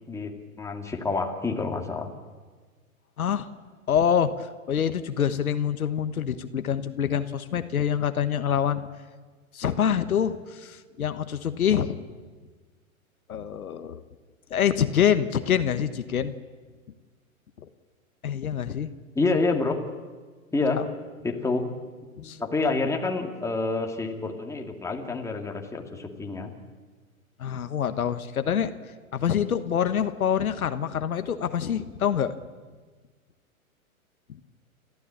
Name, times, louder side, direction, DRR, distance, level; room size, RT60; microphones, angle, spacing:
voice 1, 0.1-2.1 19.2-19.8 20.5-20.8 21.2-21.7 22.2-26.5, left 3 dB, 5° left, 1 dB, 2.3 m, -28 dB
voice 2, 3.2-3.5 3.9-8.9 9.5-12.0 13.3-14.0 14.5-16.3 17.6-17.7 18.2-18.9 20.8-20.9 22.2-22.4 27.4-32.4 34.3-34.4, left 8 dB, 80° left, 10 dB, 1.3 m, -26 dB
29.5 x 13.5 x 8.7 m, 1.4 s
hypercardioid pair, 115°, 43 cm